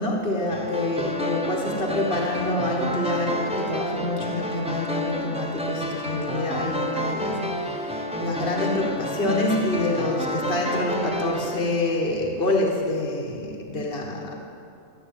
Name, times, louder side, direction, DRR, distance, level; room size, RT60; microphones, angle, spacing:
voice 1, 0.0-14.3, left 2 dB, 45° left, -1 dB, 1.7 m, -27 dB
sound 1, 0.5-11.6, left 1 dB, 5° right, 0.7 m, -29 dB
13.5 x 8.5 x 8.9 m, 2.6 s
omnidirectional pair, 1.4 m